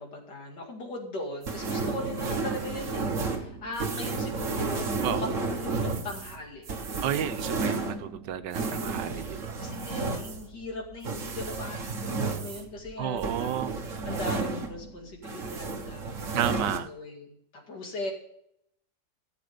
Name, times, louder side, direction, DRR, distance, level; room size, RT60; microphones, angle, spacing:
voice 1, 0.0-6.6 9.6-13.5 14.0-17.3 17.7-18.1, left 2 dB, 75° left, 2 dB, 2.9 m, -39 dB
sound 1, 1.4-15.0 15.2-16.8, right 4 dB, 50° right, 1.6 m, -32 dB
voice 2, 7.0-9.6 13.0-13.7 16.3-16.9, right 10 dB, 85° right, 11 dB, 1.4 m, -31 dB
14.0 x 7.0 x 5.1 m, 0.73 s
omnidirectional pair, 1.8 m